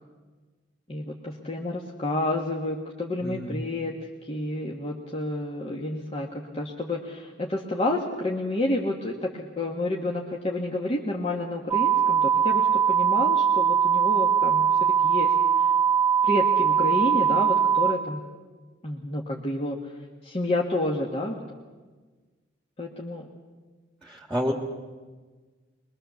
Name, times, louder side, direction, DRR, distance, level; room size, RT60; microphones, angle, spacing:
voice 1, 0.9-4.0 4.2-15.3 16.2-18.2 18.8-19.8 20.2-21.4 22.8-23.2, left 1 dB, 30° left, -1 dB, 1.7 m, -30 dB
voice 2, 3.2-3.6 24.0-24.5, equal, ahead, 1 dB, 1.9 m, -29 dB
sound 1, 11.7-17.9, right 7 dB, 20° right, 0.6 m, -21 dB
23.5 x 22.0 x 7.1 m, 1.4 s
head